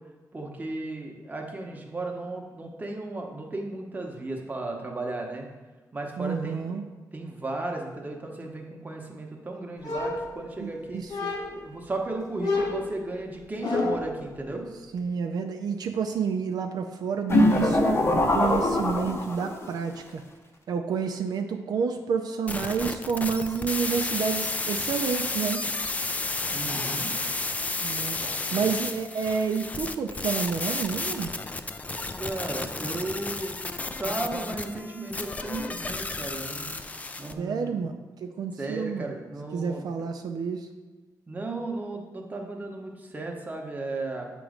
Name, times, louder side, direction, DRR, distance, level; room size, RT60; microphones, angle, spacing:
voice 1, 0.3-5.5 5.9-6.8 7.1-11.0 11.5-14.7 26.5-27.2 28.2-28.6 32.2-33.5 34.0-36.7 37.2-37.9 38.6-40.1 41.3-44.3, right 2 dB, 25° right, 1 dB, 0.9 m, -35 dB
voice 2, 6.2-6.8 10.6-11.3 14.9-20.2 20.7-25.6 27.8-28.2 28.5-31.3 37.4-37.9 38.2-39.1 39.5-40.7, right 6 dB, 75° right, 4 dB, 0.4 m, -29 dB
sound 1, 9.8-10.7 11.1-11.7 12.4-14.2, left 3 dB, 80° left, 1.1 m, -30 dB
sound 2, 17.3-19.7, left 1 dB, 40° left, 0.8 m, -22 dB
sound 3, 22.5-37.3, left 3 dB, 20° left, 0.3 m, -32 dB
7.1 x 3.0 x 5.0 m, 1.2 s
wide cardioid pair, 110°, 7 cm